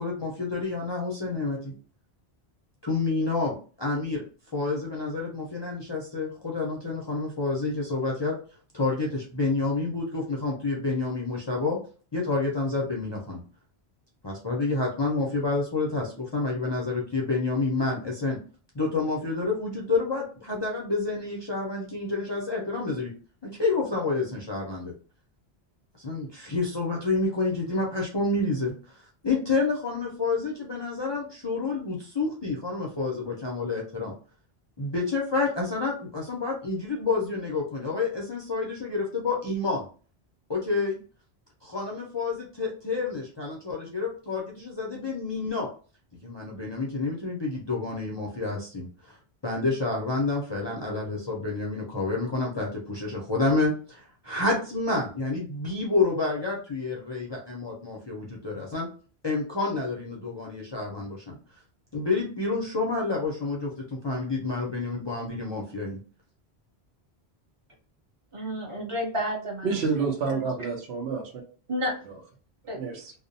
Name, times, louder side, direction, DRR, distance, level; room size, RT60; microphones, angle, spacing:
voice 1, 0.0-1.7 2.8-4.2 4.5-8.4 8.7-11.8 12.1-13.4 14.2-18.4 18.7-23.1 23.4-24.9 26.0-34.1 34.8-39.9 40.5-41.0 41.6-45.7 46.2-49.2 49.4-58.9 59.2-61.4 61.9-66.0, left 3 dB, 40° left, -3 dB, 0.4 m, -29 dB
voice 2, 68.3-69.7 70.0-70.4 71.7-71.9 72.7-72.8, equal, 35° right, -1 dB, 0.7 m, -31 dB
voice 3, 69.6-71.4 72.7-73.1, right 5 dB, 80° right, 0 dB, 1.0 m, -29 dB
2.7 x 2.0 x 2.6 m, 0.39 s
omnidirectional pair, 1.1 m